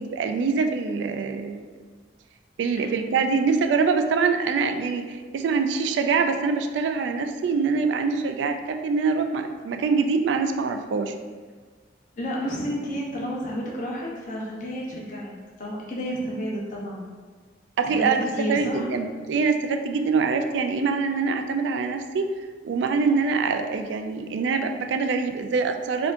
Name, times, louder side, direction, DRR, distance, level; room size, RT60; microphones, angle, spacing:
voice 1, 0.1-1.7 2.6-11.1 17.8-22.3 22.6-26.1, right 4 dB, 75° right, 6 dB, 0.3 m, -24 dB
voice 2, 12.2-15.3 15.6-17.1 17.9-18.9, equal, 45° left, -3 dB, 0.7 m, -31 dB
4.2 x 2.7 x 2.5 m, 1.5 s
head